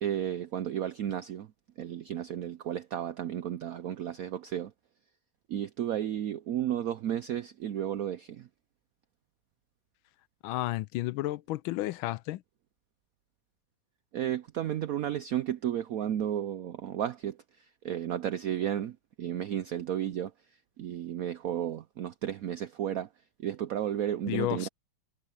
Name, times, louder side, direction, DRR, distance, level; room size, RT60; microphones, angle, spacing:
voice 1, 0.0-1.5 1.8-4.7 5.5-8.5 14.1-20.3 20.8-23.1 23.4-24.7, right 10 dB, 80° right, 0.7 m, -33 dB
voice 2, 10.4-12.4 24.3-24.7, left 16 dB, 85° left, 1.4 m, -32 dB
omnidirectional pair, 2.2 m